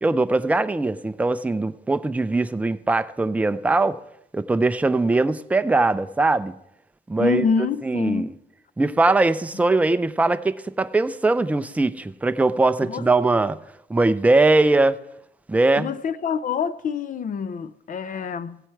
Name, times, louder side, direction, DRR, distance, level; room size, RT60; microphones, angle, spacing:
voice 1, 0.0-4.0 4.3-6.5 7.1-7.5 7.8-8.3 8.8-13.6 13.9-15.0 15.5-15.9, right 2 dB, 10° right, 0.4 m, -21 dB
voice 2, 7.2-8.4 12.8-13.1 15.8-18.6, left 6 dB, 50° left, 0.6 m, -26 dB
16.0 x 7.9 x 4.5 m
cardioid pair, 135°, 17 cm